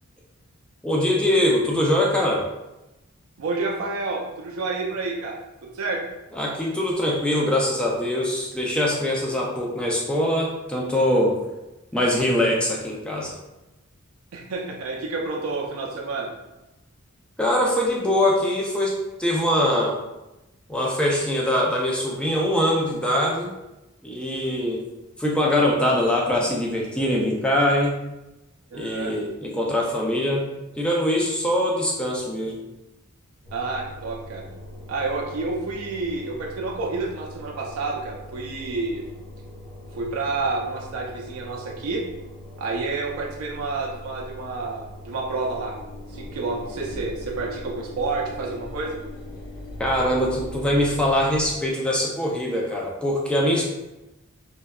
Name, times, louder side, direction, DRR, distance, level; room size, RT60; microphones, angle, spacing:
voice 1, 0.8-2.5 6.3-11.4 11.9-13.3 17.4-20.0 20.7-23.5 24.0-24.8 25.2-28.0 28.7-30.5 30.8-32.6 49.8-53.6, left 1 dB, 5° left, -3 dB, 0.3 m, -23 dB
voice 2, 3.4-6.0 14.3-16.3 28.7-29.1 33.5-34.5 34.9-39.1 40.0-42.0 42.6-45.7 46.1-49.0 53.5-53.6, right 3 dB, 75° right, -2 dB, 0.4 m, -29 dB
Engine, 33.4-51.5, left 1 dB, 20° left, 0.9 m, -40 dB
2.6 x 2.2 x 2.3 m, 1.0 s
head